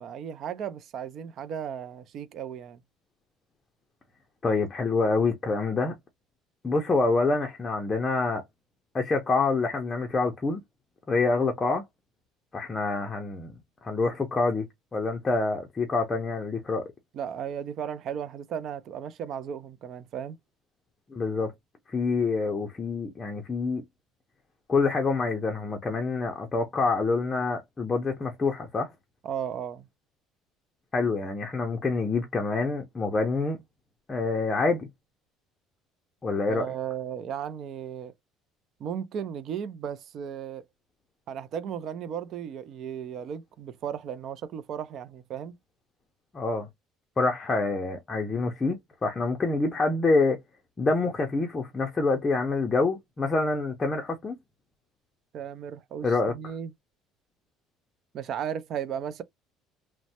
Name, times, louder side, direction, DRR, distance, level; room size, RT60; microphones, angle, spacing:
voice 1, 0.0-2.8 17.1-20.4 29.2-29.9 36.5-38.1 38.8-40.6 41.3-45.6 55.3-56.7 58.1-59.2, right 8 dB, 45° right, 0.4 m, -35 dB
voice 2, 4.4-5.9 6.6-8.4 8.9-10.6 11.1-11.8 12.5-13.5 13.8-14.7 14.9-16.9 21.1-21.5 21.9-23.8 24.7-28.9 30.9-33.6 34.1-34.9 36.2-36.7 46.3-46.7 47.2-48.8 49.0-50.4 50.8-54.4 56.0-56.3, left 3 dB, 20° left, 0.5 m, -26 dB
3.1 x 2.1 x 2.8 m
cardioid pair, 160°, 0 cm